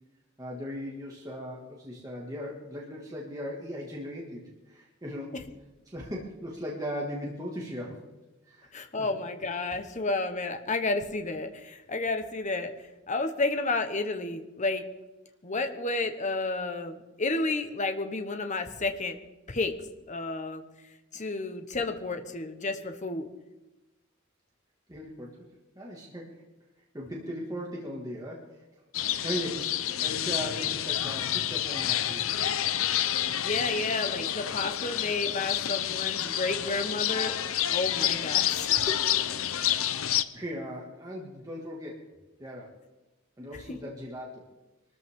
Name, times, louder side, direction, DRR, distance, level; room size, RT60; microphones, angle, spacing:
voice 1, 0.4-5.4 5.9-8.0 8.5-8.7 9.0-9.1 21.1-21.2 24.9-25.5 25.7-26.4 26.9-28.7 29.2-32.3 40.3-42.1 42.4-42.8 43.4-44.5, equal, 20° right, -3 dB, 2.1 m, -38 dB
voice 2, 8.7-12.7 13.1-14.8 15.4-19.2 19.5-19.7 20.1-20.6 21.1-23.3 33.4-37.3 37.7-39.0 43.7-43.8, left 3 dB, 35° left, 7 dB, 1.2 m, -31 dB
sound 1, 28.9-40.2, left 11 dB, 80° left, 0.7 m, -29 dB
23.0 x 13.5 x 3.7 m, 1.0 s
head